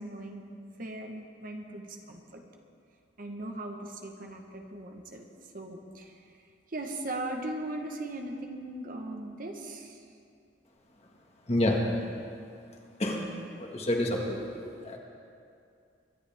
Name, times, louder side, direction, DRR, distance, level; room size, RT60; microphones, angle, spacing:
voice 1, 0.0-2.4 3.2-5.2 5.5-6.3 6.7-10.0, right 1 dB, 50° right, 3 dB, 1.2 m, -39 dB
voice 2, 11.5-11.8 13.0-13.3 13.6-15.0, left 1 dB, 35° left, 0 dB, 1.8 m, -29 dB
23.5 x 11.0 x 3.6 m, 2.4 s
head